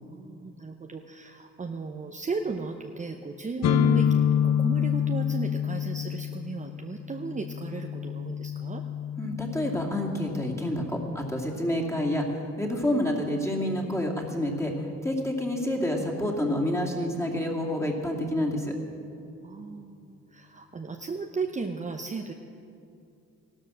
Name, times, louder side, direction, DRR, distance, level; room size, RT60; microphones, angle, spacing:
voice 1, 0.0-8.8 19.4-22.3, right 4 dB, 25° right, 4 dB, 0.8 m, -35 dB
sound 1, 3.6-11.4, left 9 dB, 60° left, 0.7 m, -28 dB
voice 2, 9.2-18.7, left 1 dB, 10° left, -1 dB, 2.5 m, -28 dB
15.0 x 12.5 x 6.3 m, 2.5 s
cardioid pair, 90°, 30 cm